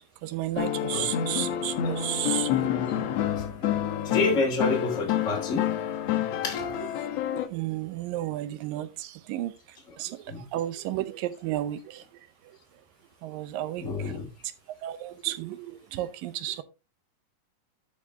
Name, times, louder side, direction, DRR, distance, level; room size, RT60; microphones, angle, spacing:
voice 1, 0.0-3.0 7.0-9.5 10.0-10.2 10.5-12.0 13.2-14.1 14.8-16.6, right 14 dB, 85° right, 2.5 m, -33 dB
sound 1, 0.6-7.5, left 10 dB, 75° left, 1.5 m, -28 dB
voice 2, 4.0-5.7 6.4-6.7 9.9-10.0 10.3-10.5 13.8-14.3, left 3 dB, 25° left, 2.9 m, -28 dB
12.5 x 5.0 x 3.6 m
omnidirectional pair, 3.9 m